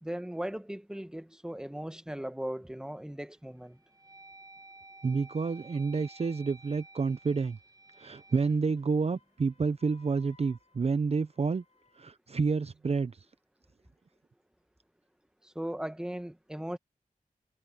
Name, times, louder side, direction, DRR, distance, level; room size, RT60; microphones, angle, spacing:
voice 1, 0.0-3.8 15.4-16.8, right 1 dB, 5° right, 1.2 m, -38 dB
sound 1, 2.7-3.2 3.7-9.8, right 2 dB, 25° right, 7.2 m, -54 dB
voice 2, 5.0-7.6 8.0-11.6 12.0-13.2, right 4 dB, 45° right, 0.6 m, -29 dB
Wind instrument woodwind instrument, 8.7-12.1, left 4 dB, 50° left, 5.5 m, -64 dB
wide cardioid pair, 85°, 14 cm